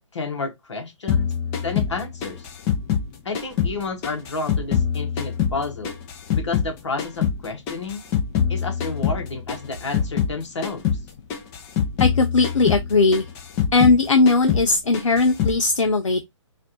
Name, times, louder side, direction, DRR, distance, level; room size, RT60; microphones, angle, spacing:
voice 1, 0.1-1.3 1.6-2.5 3.2-6.0 6.3-8.0 8.5-10.9, left 3 dB, 65° left, 1.5 m, -31 dB
sound 1, 1.1-6.7 7.0-10.4 10.6-11.0 11.3-14.0 14.3-14.7 14.9-15.6, left 7 dB, 20° left, 0.7 m, -24 dB
voice 2, 12.0-13.3 13.7-16.2, left 3 dB, 80° left, 0.5 m, -18 dB
4.1 x 2.6 x 2.7 m
figure-of-eight pair, 135°, 16 cm